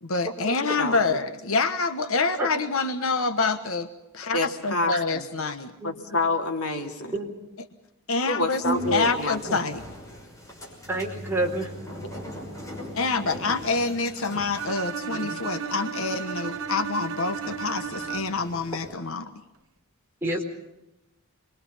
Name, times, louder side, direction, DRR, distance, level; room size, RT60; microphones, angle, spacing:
voice 1, 0.0-3.9 4.1-5.7 8.1-9.8 12.9-19.3, left 4 dB, 70° left, 9 dB, 1.2 m, -27 dB
voice 2, 0.6-1.2 4.3-5.3 5.8-7.1 8.2-9.4, left 2 dB, 90° left, 4 dB, 2.9 m, -28 dB
sound 1, 8.6-19.0, right 1 dB, 15° left, 6.0 m, -39 dB
voice 3, 10.9-11.7 15.1-15.4 20.2-20.4, right 1 dB, 10° right, -1 dB, 4.3 m, -28 dB
Bowed string instrument, 14.6-18.6, right 6 dB, 65° right, 1.1 m, -34 dB
26.5 x 22.5 x 5.6 m, 0.92 s
head